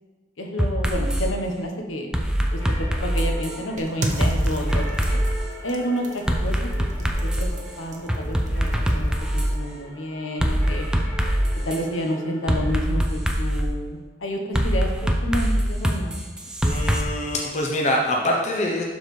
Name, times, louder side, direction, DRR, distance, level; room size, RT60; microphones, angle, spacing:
voice 1, 0.4-2.1 2.8-4.8 5.1-5.2 5.6-6.6 7.4-7.5 7.8-10.9 11.7-16.2, equal, 85° left, 3 dB, 1.1 m, -29 dB
sound 1, 0.6-1.3 2.1-3.6 4.2-5.4 6.3-7.6 8.1-9.5 10.4-11.8 12.5-13.7 14.5-17.0, equal, 5° right, 0.5 m, -23 dB
sound 2, 2.4-12.9, right 1 dB, 10° left, 1.4 m, -41 dB
sound 3, 3.8-9.6, right 1 dB, 40° right, 0.8 m, -36 dB
voice 2, 16.6-18.8, left 1 dB, 35° left, -1 dB, 0.7 m, -24 dB
12.0 x 4.1 x 3.2 m, 1.3 s
head